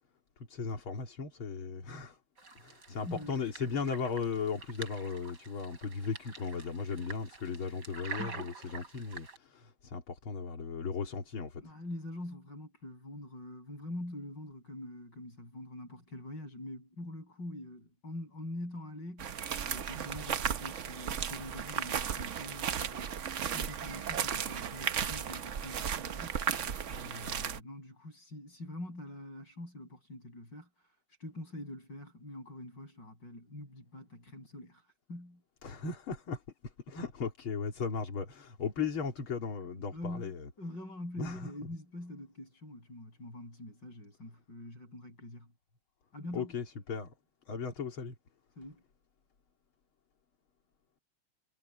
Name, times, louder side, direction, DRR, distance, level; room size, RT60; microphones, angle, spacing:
voice 1, 0.4-2.2 2.6-11.7 35.6-40.5 41.2-41.5 46.3-47.1 47.5-48.2, left 5 dB, 70° left, 3.5 m, -37 dB
sound 1, 2.4-9.4, right 4 dB, 50° right, 4.7 m, -47 dB
voice 2, 3.0-3.4 11.6-19.4 19.6-23.2 23.5-26.6 26.9-30.7 31.2-35.4 39.9-45.5 46.1-46.5 48.6-48.8, left 1 dB, 50° left, 8.7 m, -45 dB
sound 2, 19.2-27.6, right 8 dB, 65° right, 0.7 m, -35 dB
omnidirectional pair, 2.4 m